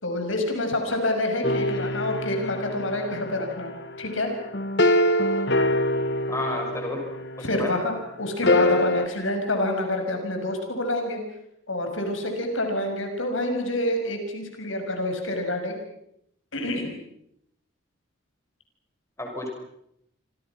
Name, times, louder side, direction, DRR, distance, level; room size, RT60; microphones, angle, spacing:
voice 1, 0.0-3.7 4.0-4.3 7.4-11.2 11.7-15.8 16.5-16.9, left 1 dB, 75° left, 4 dB, 6.2 m, -27 dB
sound 1, 1.4-7.7 8.4-9.1, left 1 dB, 55° left, 1.4 m, -25 dB
voice 2, 6.3-7.0 7.4-7.7 19.2-19.5, left 1 dB, 15° left, 1 dB, 6.1 m, -31 dB
29.0 x 26.0 x 6.0 m, 0.76 s
head